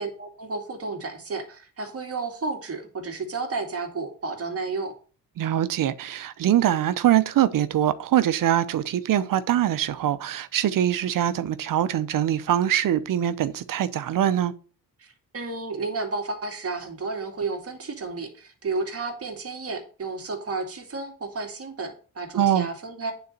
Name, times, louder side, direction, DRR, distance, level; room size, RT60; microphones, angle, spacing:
voice 1, 0.0-5.0 15.0-23.1, right 3 dB, 40° right, 2.3 m, -32 dB
voice 2, 5.4-14.5 22.4-22.7, right 11 dB, 65° right, 0.7 m, -23 dB
9.3 x 4.1 x 6.5 m
cardioid pair, 95°, 35 cm